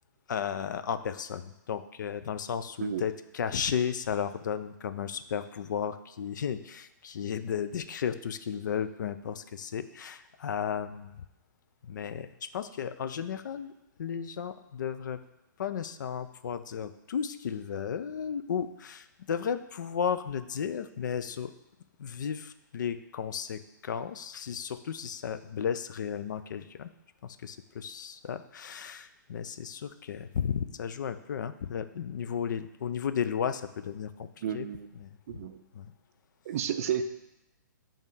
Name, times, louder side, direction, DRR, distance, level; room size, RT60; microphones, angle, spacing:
voice 1, 0.3-11.1 11.8-13.7 14.0-15.2 15.6-21.5 22.0-26.9 27.2-34.3 34.5-34.7 35.0-35.4 35.7-35.9, left 7 dB, 65° left, 12 dB, 0.4 m, -34 dB
voice 2, 34.4-34.9 35.3-35.6 36.5-37.0, right 9 dB, 45° right, 9 dB, 0.4 m, -32 dB
5.3 x 3.6 x 5.4 m, 0.91 s
hypercardioid pair, 150°, 11 cm